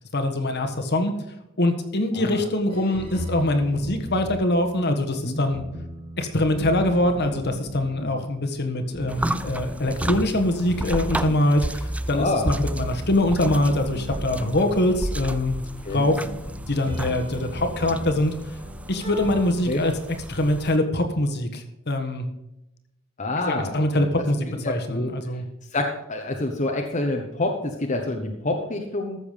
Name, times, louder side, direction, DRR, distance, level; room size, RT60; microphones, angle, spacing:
voice 1, 0.1-1.1 1.6-5.6 6.2-15.6 15.9-16.1 16.7-18.3 18.9-19.9 20.3-22.3 23.5-25.5, left 1 dB, 50° left, 5 dB, 1.5 m, -23 dB
voice 2, 2.1-2.5 5.2-5.4 7.9-8.1 12.1-12.5 15.8-16.1 19.7-19.8 23.2-24.0 24.5-25.1 25.7-29.2, left 2 dB, 35° left, 1 dB, 1.2 m, -27 dB
sound 1, 2.7-19.4, equal, 25° right, 2.1 m, -37 dB
sound 2, 9.1-20.8, right 1 dB, 5° right, 0.4 m, -33 dB
14.0 x 7.1 x 5.2 m, 0.88 s
head